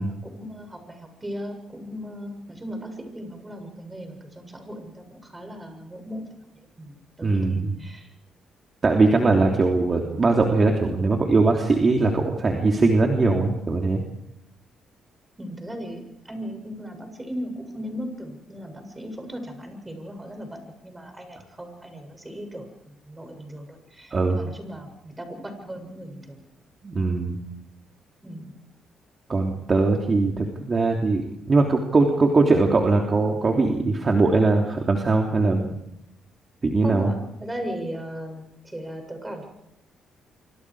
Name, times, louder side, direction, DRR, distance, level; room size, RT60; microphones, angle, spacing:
voice 1, 0.0-6.2 6.5-8.1 15.4-26.4 28.2-28.5 36.8-39.5, equal, 15° right, 5 dB, 7.1 m, -37 dB
voice 2, 7.2-7.8 8.8-14.0 24.1-24.4 26.8-27.4 29.3-35.8 36.6-37.1, right 3 dB, 35° right, 1 dB, 3.1 m, -21 dB
26.5 x 25.5 x 4.9 m, 0.79 s
cardioid pair, 90°, 0 cm